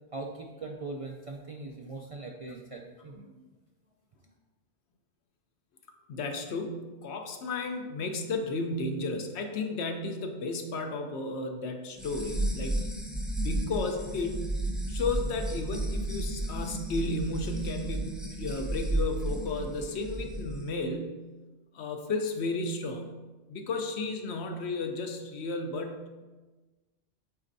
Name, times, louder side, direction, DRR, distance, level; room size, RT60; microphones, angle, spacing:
voice 1, 0.1-3.4, right 3 dB, 50° right, 0 dB, 0.4 m, -41 dB
voice 2, 6.1-12.8 13.3-14.5 14.9-21.2 21.7-23.1 23.5-26.2, left 2 dB, 80° left, 5 dB, 1.0 m, -33 dB
sound 1, 12.0-20.6, right 1 dB, ahead, 0.6 m, -33 dB
8.2 x 4.3 x 2.6 m, 1.2 s
omnidirectional pair, 1.1 m